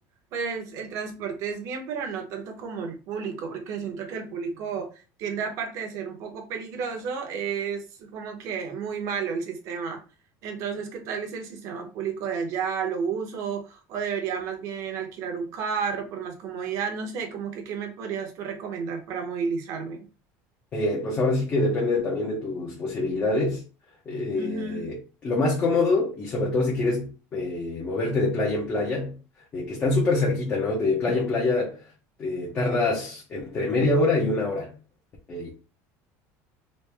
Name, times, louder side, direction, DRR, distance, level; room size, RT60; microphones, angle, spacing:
voice 1, 0.3-4.9 5.2-10.0 10.4-20.1 24.3-25.0, right 6 dB, 50° right, 0.8 m, -32 dB
voice 2, 20.7-23.6 24.1-29.2 29.5-31.8 32.2-34.7 35.3-35.5, left 2 dB, 25° left, 0.7 m, -25 dB
3.1 x 2.5 x 3.3 m
cardioid pair, 165°, 7 cm